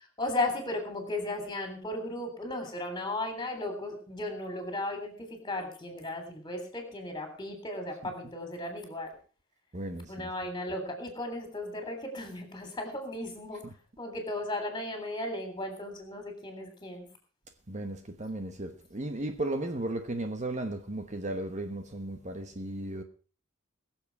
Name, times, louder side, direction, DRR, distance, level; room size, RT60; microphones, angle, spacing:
voice 1, 0.2-9.1 10.1-13.6 14.0-17.0, left 2 dB, 20° left, 3.5 m, -35 dB
voice 2, 9.7-10.0 17.7-23.0, right 1 dB, 35° right, 1.1 m, -35 dB
22.0 x 7.4 x 4.6 m
head